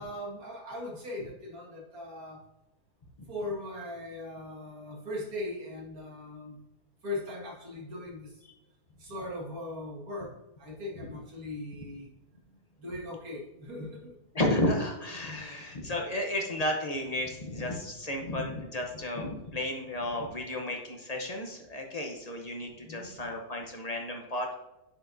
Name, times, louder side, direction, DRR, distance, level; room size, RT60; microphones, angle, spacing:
voice 1, 0.0-2.4 3.3-6.6 7.0-8.3 9.0-12.1 12.8-14.2 17.9-18.2 22.8-23.1, left 1 dB, 65° right, -3 dB, 2.2 m, -39 dB
voice 2, 14.3-24.6, left 1 dB, 35° left, 2 dB, 0.7 m, -32 dB
9.5 x 4.8 x 2.6 m, 0.94 s
omnidirectional pair, 1.7 m